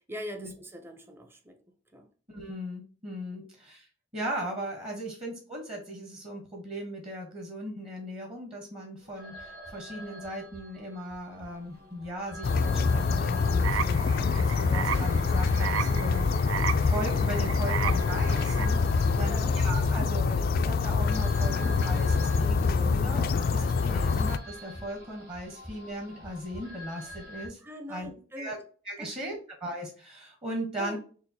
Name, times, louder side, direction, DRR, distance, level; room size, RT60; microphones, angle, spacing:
voice 1, 0.1-1.6 1.9-2.1 3.3-3.5 4.9-5.0 19.2-19.6 27.6-28.6 29.0-29.4 30.8-31.0, equal, 10° right, 0.6 m, -42 dB
voice 2, 2.3-3.9 4.1-16.3 16.8-27.6 27.9-28.1 28.3-28.6 28.8-31.0, right 1 dB, 30° right, 1.1 m, -38 dB
sound 1, 9.0-27.5, equal, 50° right, 2.1 m, -46 dB
sound 2, 12.4-24.4, left 4 dB, 50° left, 0.3 m, -25 dB
sound 3, 13.6-18.7, right 9 dB, 85° right, 0.3 m, -35 dB
6.2 x 2.4 x 2.7 m
head